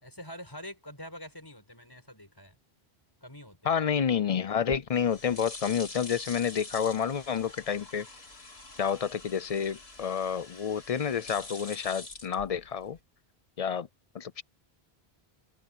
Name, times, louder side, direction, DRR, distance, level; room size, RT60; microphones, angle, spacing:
voice 1, 0.0-2.6 3.2-3.8, equal, 20° left, 5.6 m, -45 dB
voice 2, 3.7-8.1 8.8-13.0 13.6-13.9 14.1-14.4, left 7 dB, 45° left, 0.5 m, -29 dB
sound 1, 4.5-13.0, left 3 dB, 70° left, 3.0 m, -46 dB
omnidirectional pair, 1.1 m